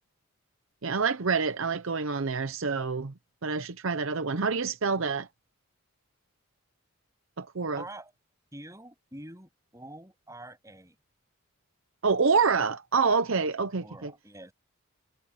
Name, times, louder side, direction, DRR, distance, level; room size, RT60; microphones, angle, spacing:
voice 1, 0.8-3.1 3.4-5.3 7.4-7.8 12.0-14.1, right 5 dB, 60° right, 0.8 m, -27 dB
voice 2, 7.8-8.1 8.5-11.0 13.8-14.5, right 1 dB, 15° right, 7.6 m, -46 dB
head